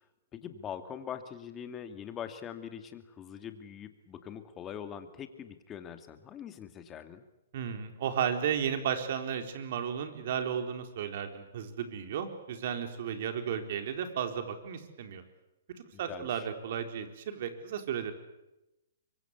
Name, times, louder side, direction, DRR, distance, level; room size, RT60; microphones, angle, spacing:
voice 1, 0.3-7.2 15.9-16.5, left 8 dB, 20° left, 8 dB, 2.5 m, -43 dB
voice 2, 7.5-15.2 16.0-18.1, right 8 dB, 55° right, 6 dB, 4.1 m, -34 dB
24.5 x 24.0 x 8.3 m, 0.93 s
hypercardioid pair, 135°, 0 cm